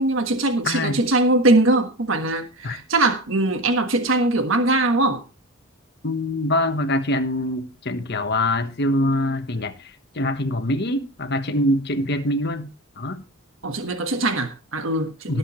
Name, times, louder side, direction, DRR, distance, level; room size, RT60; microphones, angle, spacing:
voice 1, 0.0-5.2 13.6-15.4, right 2 dB, 70° right, 1.5 m, -21 dB
voice 2, 0.6-1.0 2.6-2.8 6.0-12.7 13.0-13.2 15.3-15.4, left 1 dB, 55° left, 1.3 m, -24 dB
18.5 x 8.0 x 3.1 m
head